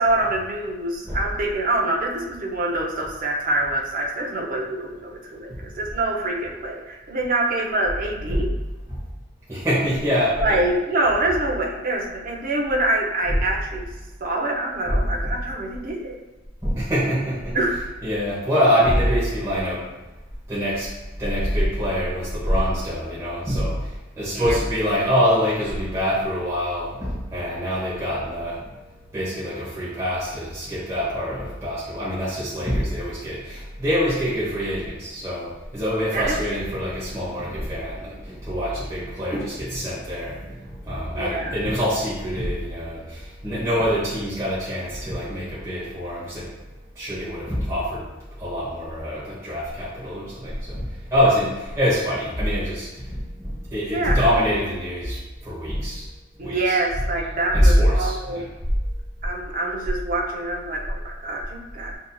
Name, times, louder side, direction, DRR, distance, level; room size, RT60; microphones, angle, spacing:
voice 1, 0.0-8.5 10.4-13.9 14.2-16.2 17.5-17.8 24.3-24.6 36.1-36.4 41.1-41.5 53.9-54.2 56.4-58.5 59.2-61.9, right 2 dB, 45° right, -1 dB, 0.6 m, -25 dB
voice 2, 5.5-5.9 8.3-8.5 8.9-9.0 9.5-10.7 13.2-13.4 14.9-15.4 16.6-19.9 20.5-28.7 29.1-46.5 46.9-48.1 48.4-56.1 56.4-56.8 57.4-58.5, equal, 15° right, -10 dB, 1.0 m, -25 dB
6.0 x 2.7 x 2.3 m, 1.1 s
head